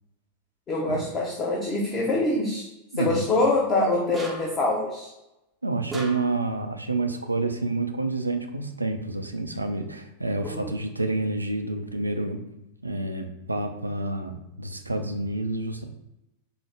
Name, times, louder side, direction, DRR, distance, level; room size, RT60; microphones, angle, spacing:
voice 1, 0.7-2.7 3.0-5.1 10.4-10.7, left 2 dB, 25° left, -3 dB, 0.7 m, -25 dB
voice 2, 2.9-3.2 5.6-12.4 12.8-15.8, right 2 dB, 85° right, 5 dB, 0.4 m, -28 dB
sound 1, 4.1-4.7 5.9-6.5, right 2 dB, 15° right, 0.5 m, -37 dB
4.5 x 2.0 x 3.3 m, 0.89 s
figure-of-eight pair, 90°, 0 cm